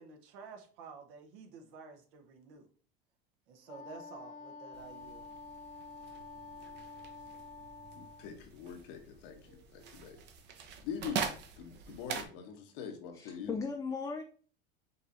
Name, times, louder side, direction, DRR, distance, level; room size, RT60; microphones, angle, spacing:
voice 1, 0.0-2.7 3.5-5.3, right 5 dB, 70° right, 1.1 m, -51 dB
Wind instrument woodwind instrument, 3.7-8.3, left 4 dB, 85° left, 1.4 m, -49 dB
sound 1, 4.7-12.3, right 6 dB, 40° right, 0.7 m, -43 dB
voice 2, 7.9-10.2 10.8-11.2 11.6-13.6, left 7 dB, 70° left, 1.2 m, -43 dB
voice 3, 13.1-14.2, left 4 dB, 10° left, 0.3 m, -37 dB
5.3 x 3.2 x 2.6 m
supercardioid pair, 120°, 29 cm